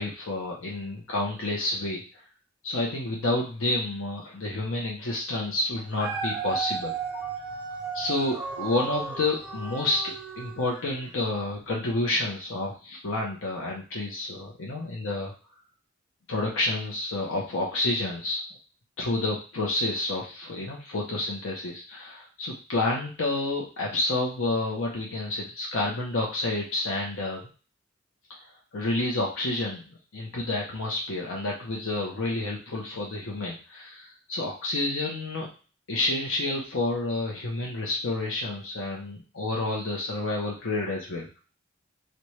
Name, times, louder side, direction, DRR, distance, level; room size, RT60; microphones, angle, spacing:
voice 1, 0.0-2.0 2.6-7.3 7.9-15.3 16.3-18.4 19.0-27.4 28.3-28.4 28.7-29.8 30.1-35.5 35.9-41.4, left 2 dB, 90° left, -2 dB, 0.7 m, -29 dB
Dog, 5.7-11.1 11.6-11.7, right 5 dB, 5° right, 0.5 m, -34 dB
4.2 x 2.2 x 3.1 m, 0.37 s
head